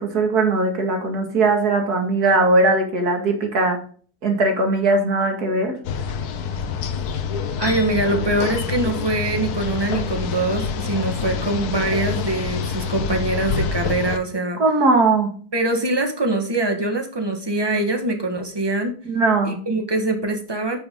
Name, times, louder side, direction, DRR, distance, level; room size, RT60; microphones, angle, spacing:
voice 1, 0.0-3.8 4.2-5.8 14.6-15.3 19.1-19.6, right 2 dB, 65° right, 3 dB, 2.5 m, -19 dB
sound 1, 5.8-14.2, left 6 dB, 70° left, 1.3 m, -26 dB
voice 2, 7.6-14.6 15.5-19.0 19.4-20.8, right 2 dB, 15° right, 5 dB, 1.3 m, -23 dB
8.8 x 7.2 x 3.7 m, 0.43 s
omnidirectional pair, 1.8 m